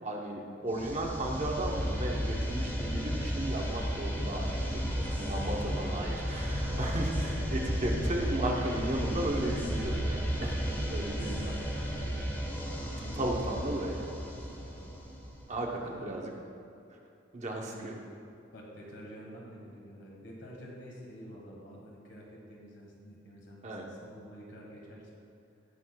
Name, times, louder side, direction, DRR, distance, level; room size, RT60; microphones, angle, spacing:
voice 1, 0.0-11.8 13.1-14.1 15.5-16.3 17.3-17.9 23.6-23.9, right 1 dB, 40° right, 0 dB, 0.8 m, -35 dB
sound 1, 0.7-15.5, equal, 10° left, 1.3 m, -33 dB
voice 2, 4.4-5.1 12.0-14.9 15.9-16.1 17.7-17.9 18.5-25.1, equal, 70° left, -2 dB, 1.5 m, -49 dB
18.5 x 6.2 x 2.3 m, 2.6 s
head